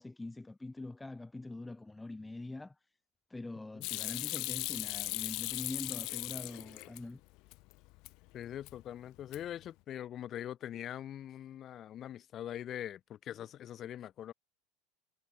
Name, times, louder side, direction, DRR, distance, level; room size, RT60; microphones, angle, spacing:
voice 1, 0.0-2.8 3.3-7.2, left 2 dB, 5° left, 1.9 m, -44 dB
Hands / Sink (filling or washing), 3.8-7.0 7.4-8.1 8.5-8.9 9.2-9.7, left 24 dB, 45° left, 1.3 m, -38 dB
voice 2, 8.3-14.3, left 11 dB, 25° left, 4.1 m, -42 dB
supercardioid pair, 175°, 0 cm